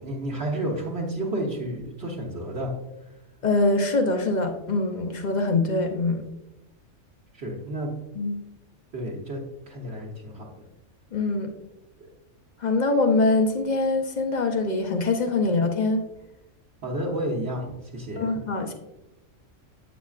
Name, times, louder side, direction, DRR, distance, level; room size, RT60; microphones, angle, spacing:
voice 1, 0.0-2.7 7.3-7.9 8.9-9.4 9.7-10.5 16.8-18.3, right 1 dB, 55° right, -5 dB, 1.3 m, -31 dB
voice 2, 3.4-6.2 8.1-8.4 11.1-11.5 12.6-16.0 18.2-18.7, left 3 dB, 45° left, 4 dB, 0.6 m, -23 dB
8.3 x 6.0 x 2.4 m, 0.93 s
omnidirectional pair, 1.3 m